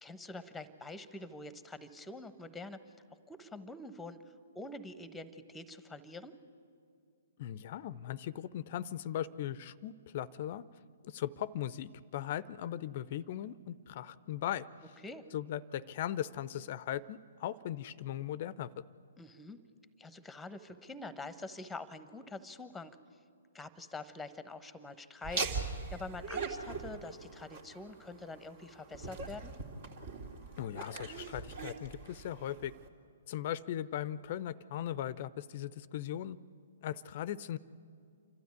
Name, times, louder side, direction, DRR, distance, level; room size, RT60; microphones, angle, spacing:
voice 1, 0.0-2.8 3.3-6.3 15.0-15.2 19.2-19.6 20.0-23.0 23.5-29.5, left 2 dB, 5° left, 13 dB, 1.0 m, -46 dB
voice 2, 7.4-10.6 11.0-15.0 15.3-18.7 30.6-32.7 33.3-36.4 36.8-37.6, left 11 dB, 50° left, 18 dB, 0.5 m, -38 dB
Laughter, 25.2-32.9, right 4 dB, 55° right, 2.5 m, -41 dB
28.0 x 12.5 x 9.6 m, 2.3 s
figure-of-eight pair, 125°, 0 cm